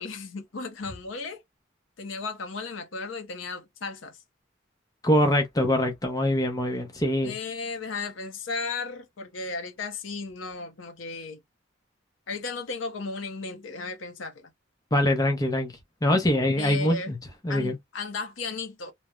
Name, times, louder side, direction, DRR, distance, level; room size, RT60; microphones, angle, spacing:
voice 1, 0.0-1.4 2.0-4.2 7.2-11.4 12.3-14.5 16.6-17.1 17.5-18.9, left 4 dB, 75° left, 0.7 m, -35 dB
voice 2, 5.0-7.3 14.9-15.7 16.0-17.2 17.4-17.8, left 1 dB, 20° left, 0.5 m, -23 dB
2.9 x 2.0 x 2.2 m
head